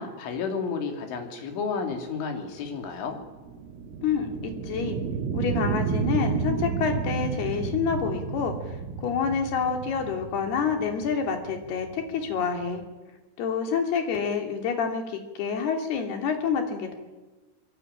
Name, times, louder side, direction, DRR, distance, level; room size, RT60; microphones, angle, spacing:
voice 1, 0.0-3.2, left 5 dB, 75° left, 4 dB, 5.5 m, -31 dB
sound 1, 2.1-12.8, right 5 dB, 80° right, 4.4 m, -32 dB
voice 2, 4.0-5.0 5.3-8.8 9.0-12.8 13.4-16.9, left 6 dB, 55° left, 4 dB, 4.7 m, -28 dB
23.5 x 22.5 x 9.1 m, 1.2 s
omnidirectional pair, 5.6 m